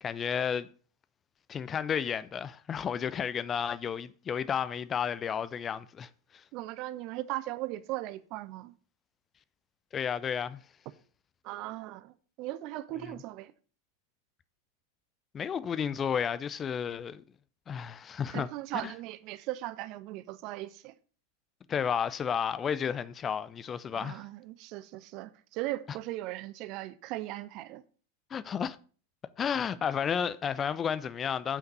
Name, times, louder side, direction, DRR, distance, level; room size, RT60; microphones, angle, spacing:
voice 1, 0.0-0.7 1.5-6.1 9.9-10.6 13.0-13.1 15.3-17.2 17.7-18.5 18.8-18.9 21.7-24.2 28.3-28.8 29.4-31.6, left 7 dB, 25° left, 0.4 m, -32 dB
voice 2, 6.5-8.7 11.4-13.5 18.3-20.9 23.9-27.8, right 16 dB, 40° right, 0.6 m, -38 dB
8.4 x 5.8 x 5.3 m
figure-of-eight pair, 90°, 0 cm